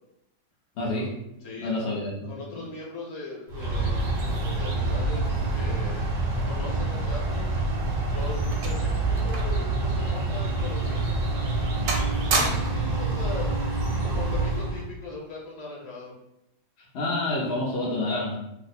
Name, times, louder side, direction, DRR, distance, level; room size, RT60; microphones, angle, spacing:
voice 1, 0.8-1.1 1.6-2.7 16.8-18.4, left 2 dB, 70° left, -4 dB, 0.6 m, -29 dB
voice 2, 1.4-6.1 6.4-7.5 8.1-11.2 12.0-13.6 14.0-16.1, left 3 dB, 45° left, -3 dB, 1.0 m, -40 dB
sound 1, 3.5-14.9, right 2 dB, 60° right, 0.9 m, -27 dB
sound 2, 7.6-9.7 10.0-10.1 10.8-10.9 11.3-11.6 11.9-12.9 13.9-14.2, right 3 dB, 80° right, 1.2 m, -31 dB
2.9 x 2.0 x 4.1 m, 0.85 s
omnidirectional pair, 1.9 m